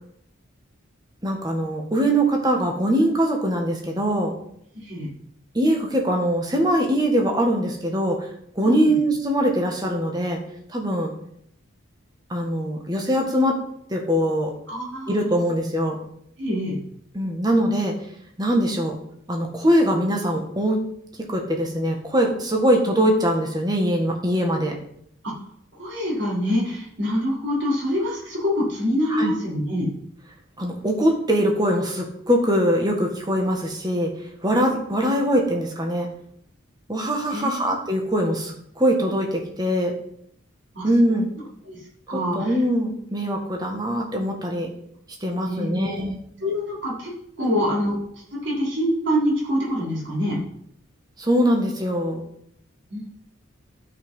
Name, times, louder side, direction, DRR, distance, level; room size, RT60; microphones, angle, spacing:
voice 1, 1.2-4.3 5.5-10.4 10.7-11.1 12.3-13.6 13.9-14.5 15.1-16.0 17.1-18.0 18.4-19.0 19.3-20.8 21.3-24.8 29.1-29.4 30.6-34.1 34.4-36.1 36.9-39.9 40.8-41.3 42.1-44.7 45.2-46.2 47.4-47.6 51.2-52.3, equal, 20° right, 1 dB, 1.8 m, -22 dB
voice 2, 4.7-5.1 8.6-8.9 14.7-15.2 16.4-16.8 25.2-25.4 25.7-29.9 37.3-37.6 40.7-40.9 41.7-42.6 45.4-46.0 46.4-47.1 47.4-48.0 48.3-50.4 52.9-53.0, equal, 60° right, -5 dB, 4.7 m, -25 dB
12.5 x 5.7 x 5.7 m, 0.69 s
head